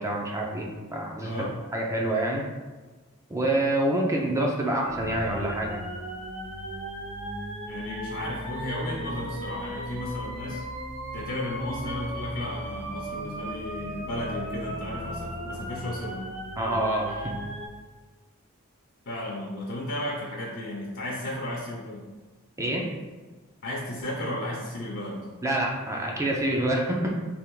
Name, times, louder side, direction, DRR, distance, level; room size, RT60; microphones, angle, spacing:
voice 1, 0.0-2.4 3.3-5.8 16.6-17.3 22.6-22.9 25.4-27.1, right 1 dB, 15° right, -1 dB, 0.5 m, -27 dB
sound 1, 4.8-17.7, equal, 30° right, 1.2 m, -36 dB
voice 2, 7.7-10.6 11.1-16.3 19.1-22.0 23.6-25.3, left 1 dB, 60° left, -3 dB, 0.7 m, -34 dB
3.5 x 3.0 x 4.6 m, 1.3 s
head